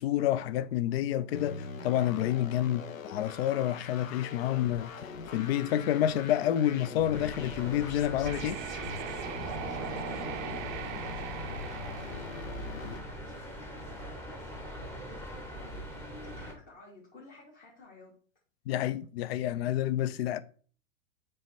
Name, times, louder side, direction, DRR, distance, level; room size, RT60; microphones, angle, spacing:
voice 1, 0.0-2.8 3.1-4.9 5.3-8.6 18.7-20.4, left 11 dB, 50° left, 0.5 m, -29 dB
sound 1, 1.3-13.0, left 6 dB, 75° left, 0.9 m, -42 dB
sound 2, 7.1-16.5, equal, 5° left, 1.2 m, -42 dB
sound 3, 8.2-13.1, right 12 dB, 35° right, 0.5 m, -40 dB
voice 2, 9.5-18.1, left 2 dB, 20° left, 1.8 m, -54 dB
7.4 x 3.2 x 4.4 m
figure-of-eight pair, 100°, 41 cm